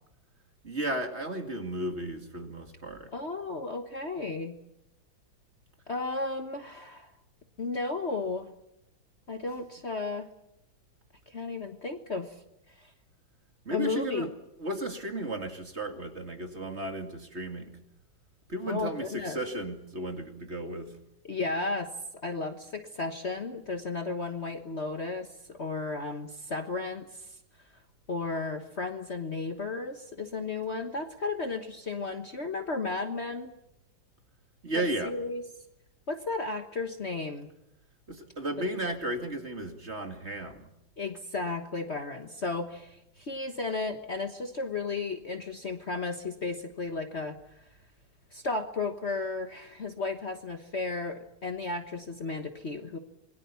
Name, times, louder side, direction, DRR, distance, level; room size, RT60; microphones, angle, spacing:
voice 1, 0.6-3.1 13.6-17.8 18.5-20.9 34.6-35.2 38.1-40.7, right 1 dB, 35° right, 6 dB, 2.5 m, -34 dB
voice 2, 3.1-4.5 5.9-7.1 7.6-8.5 9.3-10.3 11.3-12.4 12.8-12.9 13.7-14.3 18.7-19.4 21.2-21.9 22.2-27.3 28.1-33.5 35.0-35.4 36.1-37.5 41.0-47.4 48.3-53.0, left 3 dB, 40° left, 6 dB, 1.4 m, -34 dB
27.0 x 22.0 x 7.1 m, 0.84 s
omnidirectional pair, 2.1 m